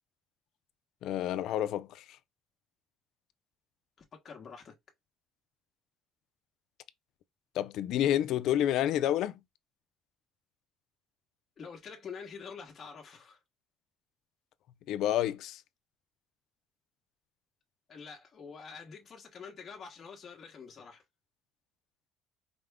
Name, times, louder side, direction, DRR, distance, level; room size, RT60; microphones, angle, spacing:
voice 1, 1.0-2.0 7.5-9.4 14.9-15.6, left 12 dB, 70° left, 0.4 m, -29 dB
voice 2, 4.1-4.7 11.6-13.4 17.9-21.0, left 6 dB, 35° left, 1.2 m, -46 dB
5.0 x 2.2 x 3.5 m
cardioid pair, 135°, 0 cm